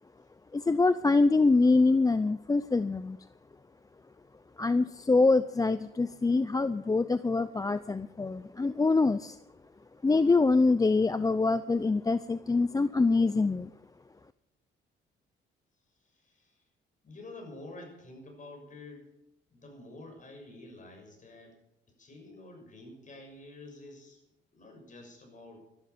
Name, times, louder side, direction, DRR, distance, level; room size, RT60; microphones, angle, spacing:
voice 1, 0.5-3.2 4.6-9.4 10.0-13.7, left 3 dB, 20° left, 13 dB, 0.6 m, -25 dB
voice 2, 16.0-16.6 17.0-19.1 19.5-21.6 22.0-24.2 24.5-25.7, left 2 dB, 40° left, 3 dB, 6.8 m, -48 dB
13.0 x 12.5 x 8.6 m, 0.87 s
cardioid pair, 90°, 20 cm